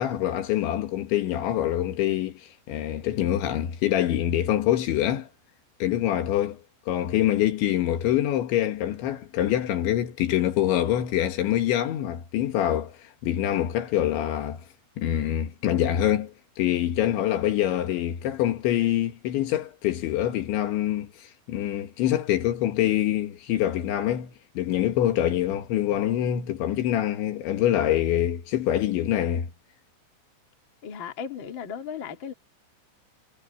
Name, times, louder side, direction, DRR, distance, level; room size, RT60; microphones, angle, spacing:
voice 1, 0.0-5.3 5.8-6.6 6.9-12.9 13.2-14.6 15.0-29.5, left 12 dB, 70° left, 3.8 m, -25 dB
voice 2, 30.8-32.3, left 7 dB, 40° left, 1.8 m, -36 dB
omnidirectional pair, 5.9 m